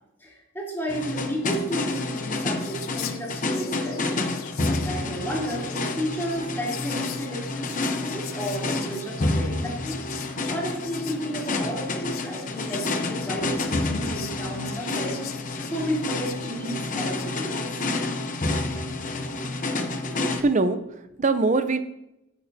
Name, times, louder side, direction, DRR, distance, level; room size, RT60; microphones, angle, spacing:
voice 1, 0.2-4.0 4.6-10.0 10.5-15.2 15.6-17.8, right 1 dB, 10° left, -6 dB, 3.2 m, -32 dB
sound 1, 0.9-20.4, left 2 dB, 40° left, 0.8 m, -29 dB
Whispering, 1.1-1.2 1.4-17.3, left 11 dB, 80° left, 0.7 m, -43 dB
voice 2, 20.1-21.8, right 3 dB, 35° right, 10 dB, 0.6 m, -24 dB
14.0 x 9.3 x 2.7 m, 0.91 s
head